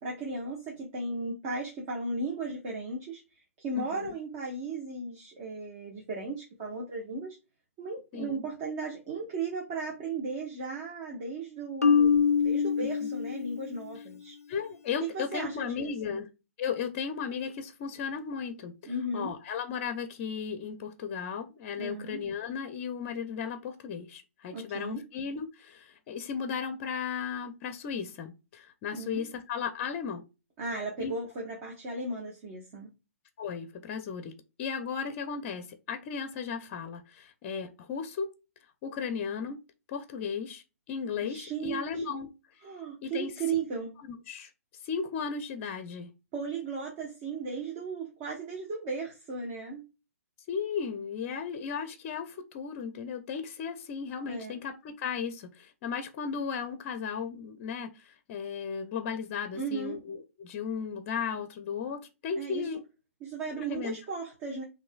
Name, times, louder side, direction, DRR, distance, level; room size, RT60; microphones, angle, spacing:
voice 1, 0.0-3.2 3.6-7.4 7.8-14.4 15.0-16.2 18.8-19.3 21.8-22.2 24.5-25.0 28.9-29.3 30.6-32.9 41.2-42.0 42.6-43.9 46.3-49.8 54.3-54.6 59.5-60.0 62.4-62.7 63.2-64.6, right 3 dB, 35° right, 1.2 m, -36 dB
voice 2, 3.8-4.1 8.1-8.4 13.0-13.1 14.5-16.3 16.6-30.2 31.0-31.1 33.4-38.3 38.8-39.6 39.9-42.3 43.0-43.3 44.0-44.5 44.8-46.1 50.5-62.8 63.6-64.0, left 6 dB, 35° left, 0.6 m, -35 dB
Marimba xylophone, 11.8-13.9, left 6 dB, 85° left, 0.4 m, -24 dB
6.0 x 2.7 x 2.3 m
figure-of-eight pair, 125°, 8 cm